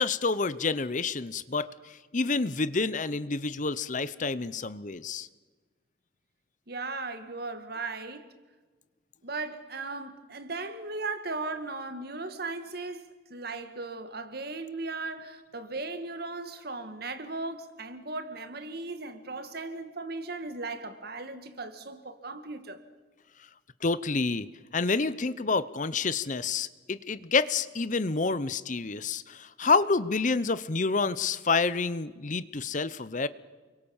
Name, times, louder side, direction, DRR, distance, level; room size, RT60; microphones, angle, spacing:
voice 1, 0.0-5.3 23.8-24.5 24.7-33.3, left 4 dB, 40° left, 0.8 m, -28 dB
voice 2, 6.7-8.3 9.2-22.8, right 3 dB, 55° right, 2.1 m, -37 dB
29.5 x 23.0 x 7.3 m
head